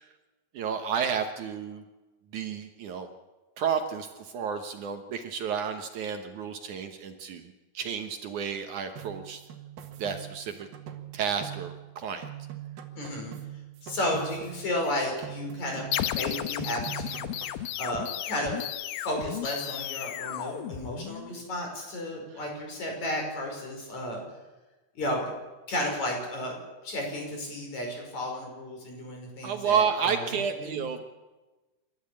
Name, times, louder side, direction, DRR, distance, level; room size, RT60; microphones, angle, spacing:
voice 1, 0.5-1.8 2.3-3.1 3.6-7.4 7.7-9.4 10.0-10.7 11.1-12.3 29.4-31.0, right 7 dB, 65° right, 6 dB, 2.4 m, -31 dB
sound 1, 9.0-12.0 12.2-14.9 15.2-16.3 16.6-17.7, right 11 dB, 85° right, 3.5 m, -42 dB
voice 2, 13.0-13.3 13.8-17.3 17.8-18.7 19.0-24.2 24.9-25.2 25.7-26.6 26.8-30.8, left 1 dB, 50° left, 2 dB, 6.5 m, -33 dB
sound 2, 15.9-21.3, left 12 dB, 80° left, 2.6 m, -34 dB
28.0 x 13.0 x 8.5 m, 1.2 s
omnidirectional pair, 4.1 m